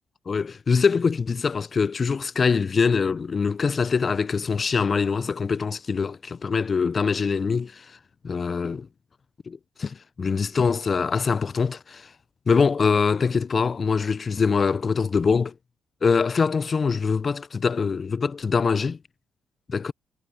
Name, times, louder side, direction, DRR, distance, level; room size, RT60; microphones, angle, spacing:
voice 1, 0.3-7.9 8.2-8.9 9.5-12.1 12.5-15.5 16.0-19.0 19.7-19.9, left 5 dB, 40° left, 0.4 m, -23 dB
cardioid pair, 90°, 0 cm